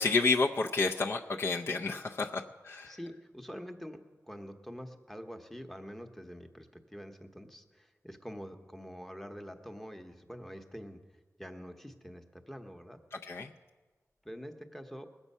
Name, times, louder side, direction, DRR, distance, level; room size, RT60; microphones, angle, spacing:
voice 1, 0.0-3.0 13.1-13.5, left 4 dB, 50° left, 0 dB, 0.5 m, -30 dB
voice 2, 2.8-4.0 4.3-11.0 11.4-13.0 14.2-15.1, equal, 5° left, 5 dB, 0.9 m, -46 dB
20.5 x 7.2 x 5.4 m, 1.3 s
wide cardioid pair, 140°, 6 cm